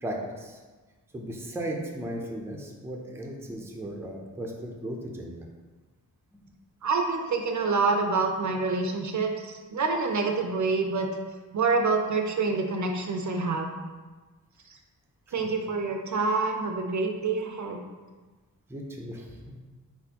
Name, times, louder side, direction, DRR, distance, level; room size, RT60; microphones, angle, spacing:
voice 1, 0.0-0.6 1.1-5.4 15.3-15.5 18.7-19.6, right 1 dB, 5° right, -1 dB, 0.5 m, -36 dB
voice 2, 6.8-11.1 11.5-13.8 15.3-17.8, right 4 dB, 55° right, 3 dB, 0.5 m, -27 dB
4.2 x 4.2 x 2.8 m, 1.3 s
wide cardioid pair, 140°, 36 cm